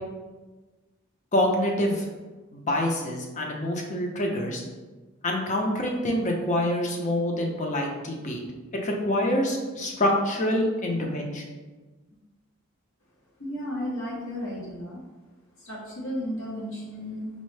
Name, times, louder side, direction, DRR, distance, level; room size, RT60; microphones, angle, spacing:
voice 1, 1.3-2.1 2.5-4.6 5.2-8.4 8.8-11.4, left 1 dB, 35° left, 0 dB, 0.6 m, -26 dB
voice 2, 13.4-15.0 15.6-17.3, equal, 75° left, -5 dB, 0.9 m, -33 dB
5.2 x 2.0 x 3.2 m, 1.3 s
head